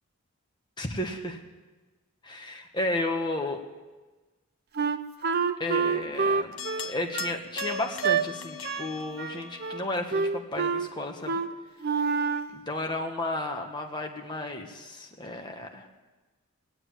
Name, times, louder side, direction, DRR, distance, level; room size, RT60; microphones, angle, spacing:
voice 1, 0.8-1.4 2.2-3.6 5.6-6.6 6.8-11.4 12.5-15.9, left 2 dB, 20° left, 2 dB, 1.4 m, -33 dB
Wind instrument woodwind instrument, 4.8-8.2 8.6-8.9 9.2-9.8 10.1-10.9 11.3-11.5 11.8-12.5, right 5 dB, 45° right, 0.7 m, -27 dB
sound 1, 6.6-10.1, left 7 dB, 60° left, 0.8 m, -41 dB
19.0 x 8.1 x 9.0 m, 1.2 s
head